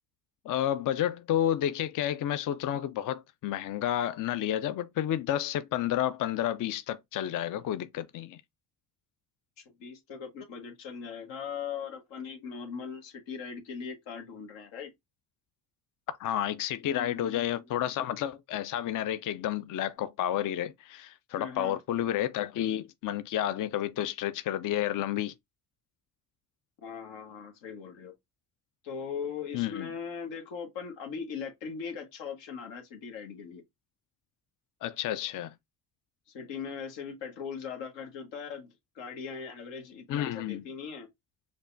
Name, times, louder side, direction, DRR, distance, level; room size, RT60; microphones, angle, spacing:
voice 1, 0.5-8.4 16.1-25.3 29.5-29.9 34.8-35.5 40.1-40.6, left 11 dB, 45° left, 0.4 m, -31 dB
voice 2, 9.6-14.9 16.8-17.8 21.4-21.8 26.8-28.1 28.8-33.6 36.3-41.1, left 6 dB, 80° left, 1.2 m, -40 dB
5.1 x 2.2 x 2.6 m
hypercardioid pair, 55°, 44 cm